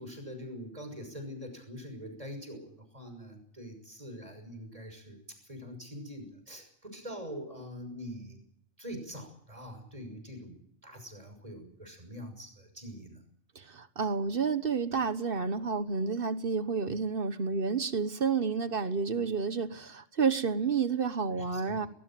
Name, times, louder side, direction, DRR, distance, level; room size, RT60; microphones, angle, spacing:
voice 1, 0.0-5.2 5.5-8.4 8.8-13.2 21.3-21.9, equal, 30° right, 6.4 m, -44 dB
voice 2, 13.5-21.9, right 5 dB, 50° right, 1.2 m, -30 dB
20.5 x 19.5 x 7.6 m
omnidirectional pair, 1.3 m